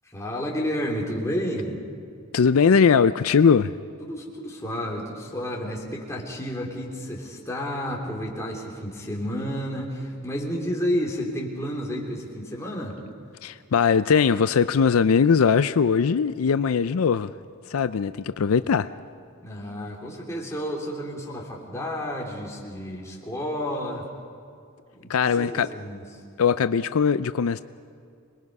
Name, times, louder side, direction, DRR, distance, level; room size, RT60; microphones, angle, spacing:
voice 1, 0.0-1.8 4.0-13.0 19.4-24.1 24.9-26.0, equal, 15° left, 3.2 m, -31 dB
voice 2, 2.3-3.7 13.4-17.3 17.7-18.9 25.1-25.7 26.4-27.6, left 6 dB, 75° left, 0.5 m, -20 dB
26.0 x 21.0 x 5.5 m
head